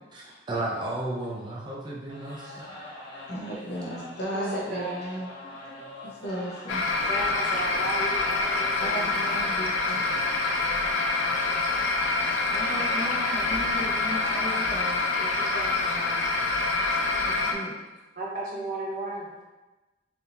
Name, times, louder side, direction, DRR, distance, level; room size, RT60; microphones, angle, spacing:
voice 1, 0.1-2.8, right 1 dB, 25° right, -5 dB, 0.4 m, -33 dB
sound 1, 2.1-15.1, left 2 dB, 25° left, 0.7 m, -43 dB
voice 2, 3.3-5.3 6.0-6.9 8.8-10.0 12.5-16.3 17.2-17.7, right 1 dB, 60° left, -4 dB, 0.8 m, -36 dB
voice 3, 4.3-4.9 7.1-9.0 18.2-19.3, right 2 dB, 50° right, -5 dB, 0.8 m, -34 dB
sound 2, 6.7-17.5, left 3 dB, 90° left, 0.4 m, -26 dB
3.4 x 2.6 x 2.7 m, 1.1 s
head